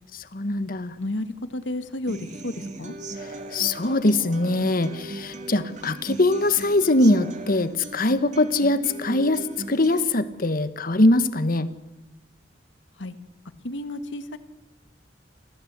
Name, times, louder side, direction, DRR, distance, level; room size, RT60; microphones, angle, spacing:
voice 1, 0.3-0.9 3.5-11.7, left 2 dB, 50° left, 12 dB, 1.4 m, -22 dB
voice 2, 1.0-2.9 13.0-13.2 13.6-14.4, left 1 dB, 80° left, 11 dB, 1.7 m, -32 dB
Human voice / Acoustic guitar, 2.1-10.1, right 2 dB, 40° right, 2.1 m, -38 dB
26.5 x 16.0 x 8.2 m, 1.0 s
head